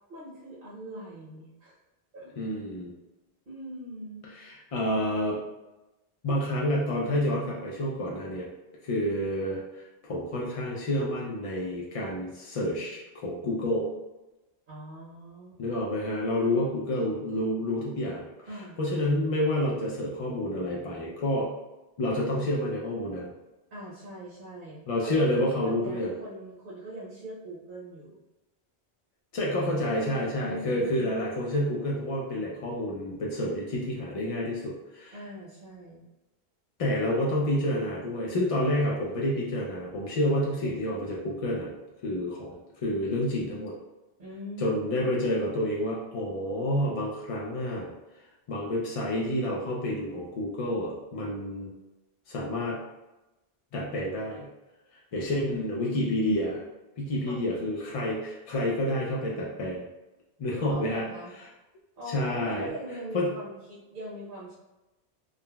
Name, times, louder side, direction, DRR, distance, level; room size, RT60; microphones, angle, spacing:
voice 1, 0.1-1.8 2.1-2.3 3.5-4.3 14.7-15.6 18.5-18.8 23.7-28.2 30.3-31.1 35.1-36.1 44.2-45.0 55.3-55.9 57.3-57.5 60.7-61.3 62.0-64.5, equal, 55° right, -8 dB, 0.9 m, -41 dB
voice 2, 2.4-2.9 4.3-5.4 6.2-8.5 8.8-13.9 15.6-18.5 18.8-21.5 22.0-23.3 24.9-26.1 29.3-35.2 36.8-41.7 42.0-42.5 42.8-43.7 44.6-47.9 48.5-51.7 52.3-52.8 53.7-54.5 55.1-56.6 57.0-59.8 60.4-61.0 62.1-62.7 63.1-63.3, left 1 dB, 60° left, -4 dB, 0.3 m, -29 dB
3.6 x 2.1 x 2.2 m, 1.0 s
omnidirectional pair, 1.1 m